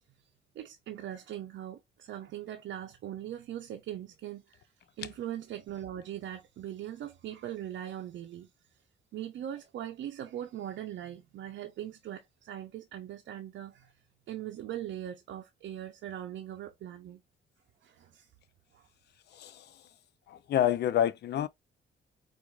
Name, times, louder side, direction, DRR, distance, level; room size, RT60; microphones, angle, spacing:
voice 1, 0.5-4.6 5.0-8.5 9.1-13.9 14.3-17.2 17.8-18.3 18.7-18.9, right 11 dB, 75° right, 0.6 m, -40 dB
voice 2, 19.3-19.8 20.3-21.5, left 11 dB, 60° left, 0.4 m, -28 dB
4.5 x 2.5 x 2.4 m
cardioid pair, 90°, 19 cm